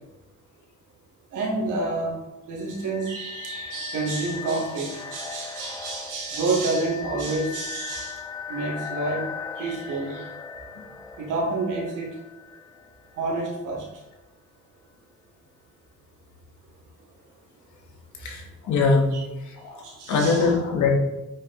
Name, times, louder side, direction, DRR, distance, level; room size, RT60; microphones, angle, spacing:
voice 1, 1.3-2.1 2.5-8.2 8.5-9.2 9.6-10.2 11.2-12.1 13.2-13.8 19.1-19.2 19.8-20.5, right 3 dB, 85° right, -2 dB, 2.9 m, -28 dB
sound 1, 2.6-13.4, left 6 dB, 10° left, 0.9 m, -39 dB
voice 2, 18.2-19.2 19.4-20.9, left 4 dB, 75° left, 1 dB, 1.9 m, -23 dB
8.7 x 4.8 x 4.1 m, 1.0 s
cardioid pair, 90°, 30 cm